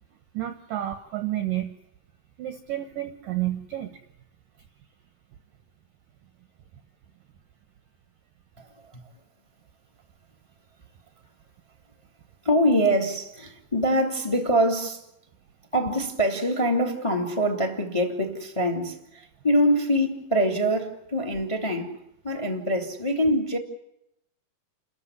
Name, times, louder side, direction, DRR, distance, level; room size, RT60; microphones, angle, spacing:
voice 1, 0.3-1.8 2.4-4.0, right 13 dB, 70° right, 2.2 m, -30 dB
voice 2, 12.4-15.0 15.7-22.0 22.2-23.6, equal, 10° left, 1.8 m, -24 dB
30.0 x 14.0 x 9.7 m
omnidirectional pair, 5.2 m